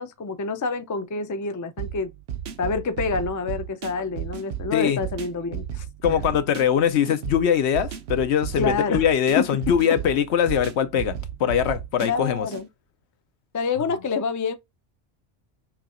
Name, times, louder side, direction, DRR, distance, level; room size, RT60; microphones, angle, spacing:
voice 1, 0.0-2.1 2.6-5.9 8.6-9.0 9.4-9.5 12.0-12.7 13.5-14.5, left 4 dB, 30° left, 0.3 m, -27 dB
sound 1, 1.8-12.7, right 9 dB, 75° right, 0.9 m, -34 dB
voice 2, 6.0-12.5, left 8 dB, 85° left, 1.0 m, -22 dB
5.9 x 2.8 x 2.4 m
omnidirectional pair, 1.1 m